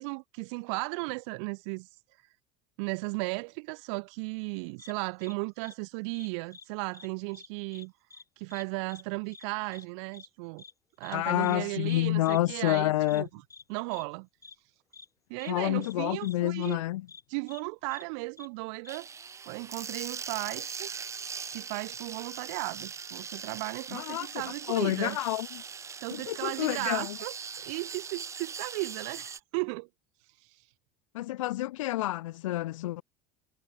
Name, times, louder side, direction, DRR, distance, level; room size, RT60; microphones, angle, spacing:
voice 1, 0.0-1.9 2.8-7.9 8.4-10.6 11.0-13.3 13.7-14.3 15.3-16.8 17.3-19.1 19.5-21.0 21.5-25.2 26.0-29.9 30.4-30.6, right 33 dB, 70° right, 0.8 m, -35 dB
sound 1, 4.8-4.9 5.2-5.3 5.6-5.7 6.1-6.7 6.9-7.1 7.3-7.9 8.1-8.2 8.5-8.6 8.9-9.0 9.3-9.5 9.7-9.9 10.1-10.3 10.6-10.7 11.0-11.2 11.4-11.6 11.9-12.0 12.3-12.4 12.7-12.8 13.1-13.2 13.5-13.6 13.9-14.0 14.4-14.6 14.9-15.1 15.4-15.5 15.8-15.9 16.2-16.4 16.6-16.8 17.1-17.2 17.5-17.6 17.9-18.0 18.4-18.5 18.8-19.0, left 4 dB, 20° left, 3.0 m, -49 dB
voice 2, 11.1-13.2 15.5-17.0 23.9-24.4 24.7-25.5 26.1-27.2 31.1-33.0, left 16 dB, 85° left, 0.7 m, -29 dB
sound 2, 18.9-29.4, right 6 dB, 20° right, 0.4 m, -41 dB
hypercardioid pair, 85°, 16 cm